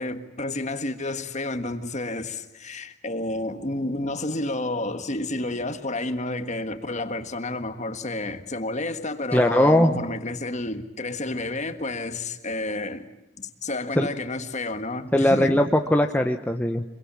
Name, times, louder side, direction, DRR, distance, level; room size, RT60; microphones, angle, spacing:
voice 1, 0.0-13.1 13.4-15.6, left 2 dB, 35° left, 1.6 m, -30 dB
voice 2, 9.3-9.9 14.0-14.1 15.1-16.8, left 1 dB, 10° left, 0.9 m, -20 dB
25.0 x 23.5 x 8.6 m
head